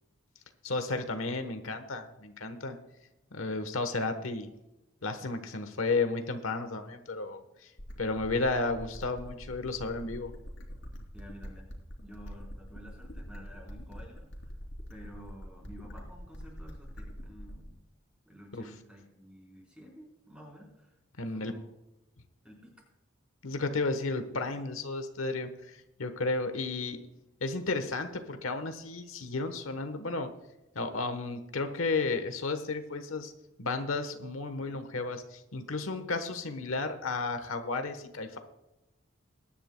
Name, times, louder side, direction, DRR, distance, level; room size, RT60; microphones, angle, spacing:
voice 1, 0.6-2.8 3.3-4.5 5.0-7.7 8.0-10.3 18.5-18.6 21.2-21.5 23.4-27.0 27.4-30.3 30.7-33.3 33.6-38.4, left 3 dB, 90° left, 8 dB, 1.1 m, -33 dB
sound 1, 7.8-17.8, equal, 65° left, 3.1 m, -45 dB
voice 2, 11.1-11.7 12.0-14.5 14.9-17.8 18.2-21.7 22.4-22.7, equal, 5° right, -1 dB, 4.1 m, -51 dB
21.5 x 10.0 x 2.2 m, 0.94 s
head